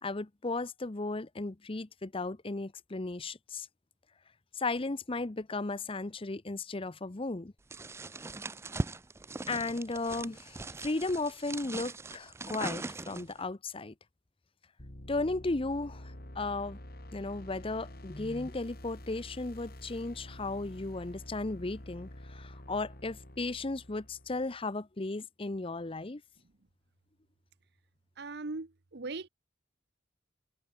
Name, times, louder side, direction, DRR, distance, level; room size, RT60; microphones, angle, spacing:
voice 1, 0.0-3.7 4.6-7.5 9.5-13.9 15.1-16.8 17.1-26.2, left 2 dB, 30° left, 0.8 m, -35 dB
sound 1, 7.7-13.4, right 2 dB, 15° right, 0.4 m, -40 dB
sound 2, 14.8-24.6, left 1 dB, 55° left, 4.1 m, -48 dB
voice 2, 28.2-29.3, right 3 dB, 65° right, 1.0 m, -39 dB
head